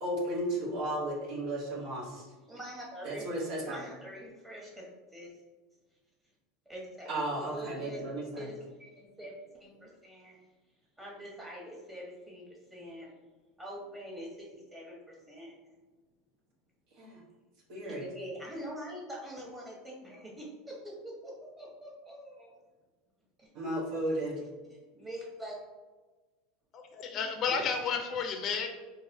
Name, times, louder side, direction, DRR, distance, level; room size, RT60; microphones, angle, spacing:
voice 1, 0.0-2.2 3.0-3.8 7.1-8.5 17.0-17.2 17.7-18.0 23.5-24.4, right 1 dB, 65° right, -4 dB, 1.0 m, -34 dB
voice 2, 2.4-3.3 3.6-4.8 5.1-5.3 6.6-8.0 8.4-10.4 11.0-12.4 12.7-13.1 13.6-15.5 17.8-22.5 23.4-23.5 24.7-25.6 27.1-27.6, equal, 15° right, -4 dB, 1.3 m, -44 dB
voice 3, 26.7-28.7, left 5 dB, 40° left, 5 dB, 0.5 m, -32 dB
4.0 x 2.8 x 2.7 m, 1.3 s
supercardioid pair, 120°, 0 cm